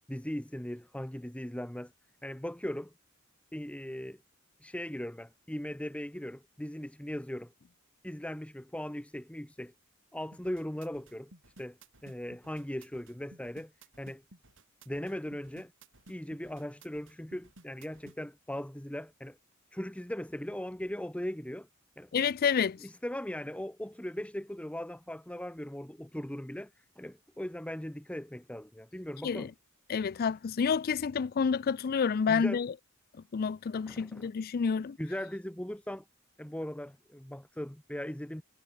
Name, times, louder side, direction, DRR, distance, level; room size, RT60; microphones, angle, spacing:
voice 1, 0.1-1.9 2.2-2.9 3.5-4.2 4.6-7.5 8.0-9.7 10.1-11.3 11.6-13.7 14.0-14.2 14.9-15.7 16.1-19.4 19.7-21.7 22.0-22.1 22.8-29.5 32.3-32.6 33.9-34.3 35.0-36.0 36.4-38.4, left 1 dB, 5° left, 0.9 m, -39 dB
sound 1, 10.3-18.2, right 2 dB, 65° right, 7.5 m, -56 dB
voice 2, 22.1-22.8 29.2-29.5 29.9-32.7 33.3-35.0, left 6 dB, 45° left, 0.4 m, -29 dB
head